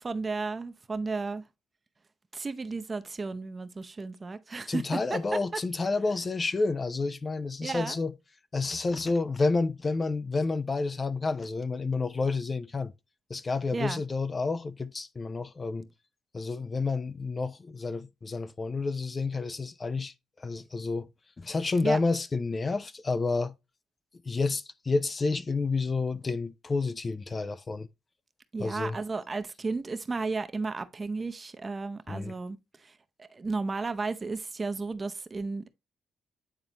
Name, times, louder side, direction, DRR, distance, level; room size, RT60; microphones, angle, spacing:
voice 1, 0.0-1.4 2.3-5.6 7.6-8.0 13.7-14.0 21.8-22.0 28.5-32.6 32.8-32.9 33.2-35.7, right 3 dB, 30° right, 0.7 m, -33 dB
voice 2, 4.7-8.1 8.5-12.9 13.3-15.9 16.3-20.1 20.4-21.1 21.4-23.5 24.3-27.9 28.6-29.0 32.1-32.3, left 3 dB, 30° left, 0.4 m, -30 dB
8.9 x 4.0 x 2.9 m
cardioid pair, 90°, 0 cm